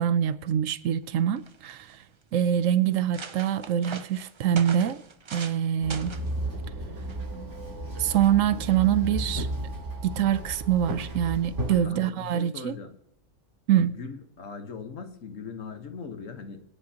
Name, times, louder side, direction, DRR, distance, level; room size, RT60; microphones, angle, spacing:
voice 1, 0.0-2.0 2.3-5.0 5.3-6.2 8.0-9.5 10.0-12.8 13.7-13.9, right 10 dB, 85° right, 1.0 m, -25 dB
sound 1, 1.0-1.1 1.4-1.9 2.5-2.6 2.9-5.6 5.9-6.3 7.1-7.3, right 5 dB, 45° right, 0.3 m, -41 dB
Walk footsteps / Chatter / Hiss, 5.8-11.8, right 1 dB, 65° right, 3.5 m, -33 dB
voice 2, 11.8-13.0 13.7-16.6, left 5 dB, 75° left, 1.6 m, -40 dB
22.5 x 10.0 x 2.9 m
omnidirectional pair, 1.3 m